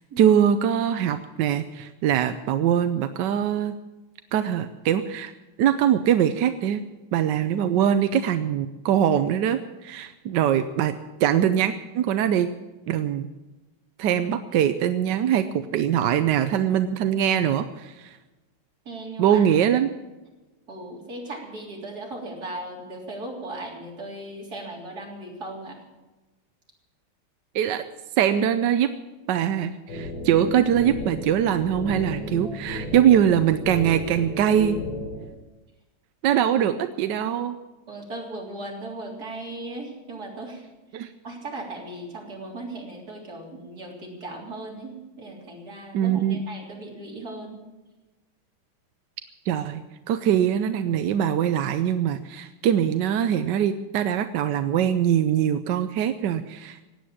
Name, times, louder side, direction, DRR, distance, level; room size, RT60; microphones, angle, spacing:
voice 1, 0.2-3.8 4.3-5.3 5.6-6.8 7.1-12.5 12.9-13.3 14.0-18.2 19.2-19.9 27.5-27.8 28.2-28.9 29.3-34.8 36.2-37.6 40.9-41.1 45.9-46.4 49.5-49.8 50.1-56.8, right 9 dB, 70° right, 9 dB, 1.1 m, -22 dB
voice 2, 18.9-19.5 20.7-25.8 32.3-32.8 36.3-36.4 37.9-40.7 41.0-47.6, right 2 dB, 45° right, -2 dB, 4.1 m, -37 dB
sound 1, 29.9-35.3, left 1 dB, 85° left, 4.4 m, -34 dB
17.0 x 9.4 x 8.6 m, 1.1 s
omnidirectional pair, 2.4 m